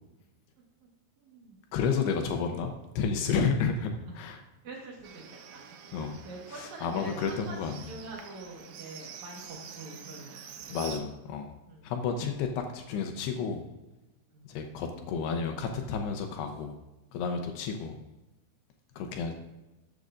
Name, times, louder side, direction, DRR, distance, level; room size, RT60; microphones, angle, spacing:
voice 1, 1.2-1.6 4.1-4.2 4.6-5.2 5.5-5.6 6.2-10.9 11.7-11.9 14.3-14.5, right 2 dB, 65° right, -1 dB, 1.9 m, -45 dB
voice 2, 1.7-3.9 4.2-4.4 5.9-6.2 6.6-7.7 10.7-11.5 11.8-13.6 14.5-16.7 17.1-18.0 19.0-19.3, left 5 dB, 80° left, 5 dB, 2.5 m, -31 dB
Livestock farm animals working animals, 5.0-11.0, right 8 dB, 85° right, 3.4 m, -47 dB
13.0 x 8.3 x 2.5 m, 1.1 s
omnidirectional pair, 5.4 m